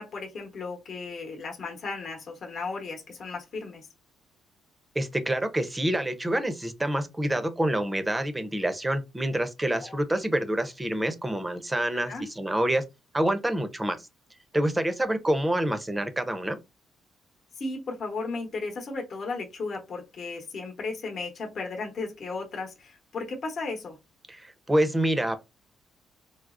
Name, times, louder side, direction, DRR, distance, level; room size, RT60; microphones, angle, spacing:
voice 1, 0.0-3.9 9.8-10.2 12.0-12.3 17.6-24.0, left 3 dB, 50° left, 1.0 m, -35 dB
voice 2, 5.0-12.8 13.1-14.0 14.5-16.6 24.3-25.4, right 1 dB, 15° right, 0.6 m, -27 dB
4.6 x 2.0 x 2.4 m
cardioid pair, 90°, 0 cm